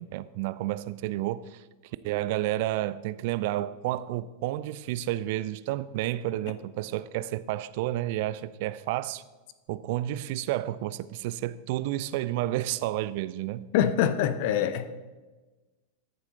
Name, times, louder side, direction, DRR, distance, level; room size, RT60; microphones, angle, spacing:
voice 1, 0.0-1.6 2.0-9.2 9.7-13.7, right 14 dB, 50° right, 0.4 m, -31 dB
voice 2, 13.7-14.9, left 9 dB, 50° left, 0.7 m, -24 dB
14.0 x 7.0 x 4.1 m
figure-of-eight pair, 90°, 0 cm